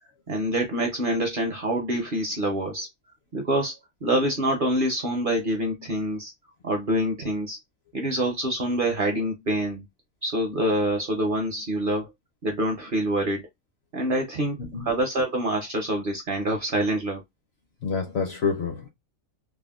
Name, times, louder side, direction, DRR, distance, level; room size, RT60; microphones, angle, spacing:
voice 1, 0.3-2.9 3.3-3.7 4.0-6.3 6.6-7.6 7.9-9.8 10.2-12.1 12.4-13.5 13.9-17.2, right 1 dB, 50° right, 0.7 m, -26 dB
voice 2, 17.8-18.9, left 5 dB, 60° left, 0.7 m, -28 dB
3.4 x 2.1 x 2.3 m
omnidirectional pair, 1.5 m